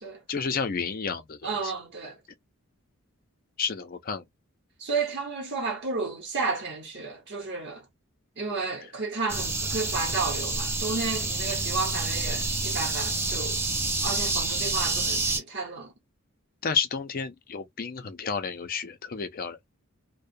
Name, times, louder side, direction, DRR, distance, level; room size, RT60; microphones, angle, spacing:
voice 1, 0.3-1.7 3.6-4.2 16.6-19.6, left 6 dB, 40° left, 0.5 m, -31 dB
voice 2, 1.4-2.2 4.8-7.9 8.4-13.6 14.0-15.9, right 4 dB, 50° right, 0.9 m, -32 dB
sound 1, 9.3-15.4, right 3 dB, 10° right, 0.5 m, -28 dB
2.4 x 2.1 x 2.5 m
head